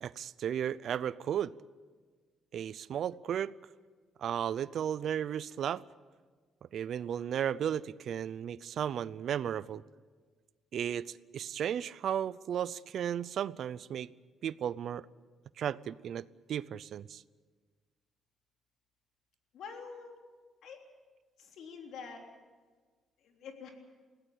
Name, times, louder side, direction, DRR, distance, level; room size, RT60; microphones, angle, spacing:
voice 1, 0.0-1.5 2.5-3.5 4.2-5.8 6.7-9.8 10.7-14.1 14.4-15.1 15.6-17.2, right 9 dB, 65° right, 19 dB, 0.6 m, -34 dB
voice 2, 19.5-20.1 20.6-20.8 21.4-22.2 23.2-23.7, left 5 dB, 75° left, 2 dB, 3.6 m, -46 dB
21.5 x 17.0 x 8.6 m, 1.5 s
cardioid pair, 90°, 0 cm